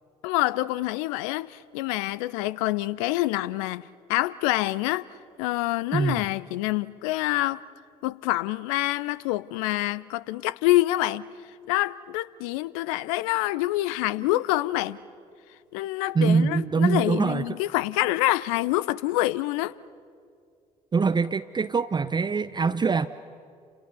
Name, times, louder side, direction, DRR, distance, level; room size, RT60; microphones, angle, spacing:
voice 1, 0.2-5.1 5.4-7.6 8.0-11.3 11.7-15.0 15.7-19.7, left 17 dB, 65° left, 0.6 m, -26 dB
voice 2, 5.9-6.3 16.1-17.4 20.9-23.1, right 5 dB, 25° right, 0.7 m, -23 dB
29.5 x 27.0 x 6.9 m
figure-of-eight pair, 45°, 19 cm